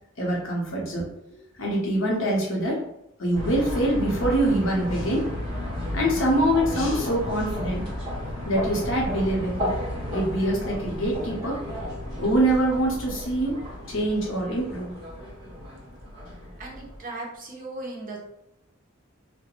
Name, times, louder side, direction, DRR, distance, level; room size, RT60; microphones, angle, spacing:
voice 1, 0.2-1.1 1.6-2.8 3.2-5.2 5.9-7.9 8.4-9.7 10.1-11.7 12.1-13.6 13.9-14.9, right 1 dB, 65° left, -2 dB, 0.7 m, -24 dB
sound 1, 3.3-17.0, left 1 dB, 20° right, 1.1 m, -33 dB
voice 2, 16.6-18.2, right 2 dB, 40° right, -2 dB, 0.6 m, -37 dB
2.3 x 2.1 x 2.9 m, 0.80 s
head